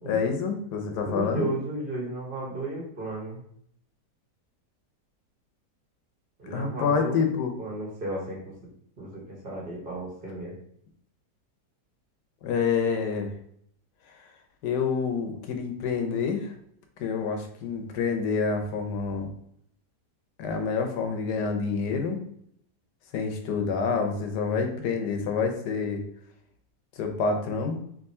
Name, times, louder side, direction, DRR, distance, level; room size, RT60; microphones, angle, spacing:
voice 1, 0.0-1.5 6.5-7.5 12.4-13.3 14.6-16.5 17.0-19.3 20.4-22.2 23.1-26.0 27.0-27.8, left 5 dB, 80° left, 4 dB, 1.3 m, -27 dB
voice 2, 1.0-3.4 6.4-8.5 9.0-10.5, right 2 dB, 35° right, -4 dB, 1.4 m, -34 dB
3.6 x 2.9 x 4.2 m, 0.68 s
omnidirectional pair, 1.8 m